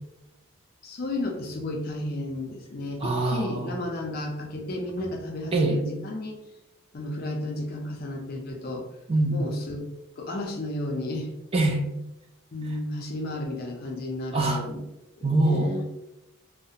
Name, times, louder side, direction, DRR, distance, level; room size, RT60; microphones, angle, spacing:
voice 1, 0.8-6.4 6.9-8.9 9.3-9.8 10.2-11.3 12.5-14.8 15.2-15.8, left 1 dB, 45° left, 2 dB, 0.4 m, -33 dB
voice 2, 3.0-3.8 5.5-5.8 9.1-9.5 11.5-11.9 14.3-14.7 15.2-15.7, right 2 dB, 25° right, 2 dB, 0.3 m, -24 dB
2.4 x 2.0 x 2.7 m, 0.93 s
head